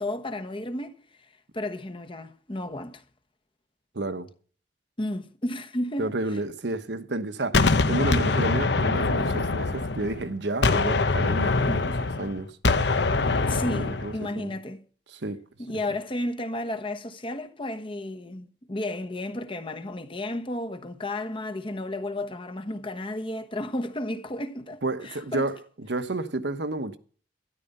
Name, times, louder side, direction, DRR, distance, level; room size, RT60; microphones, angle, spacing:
voice 1, 0.0-3.0 5.0-6.1 13.5-14.8 15.6-25.5, left 1 dB, 30° left, 1.2 m, -33 dB
voice 2, 3.9-4.3 6.0-12.5 13.7-14.6 15.1-15.4 15.7-15.8 24.8-27.0, right 2 dB, 75° right, 1.2 m, -31 dB
Gunshot gunfire, 7.5-10.3 10.6-14.2, left 3 dB, 75° left, 1.0 m, -24 dB
12.5 x 11.5 x 5.4 m
head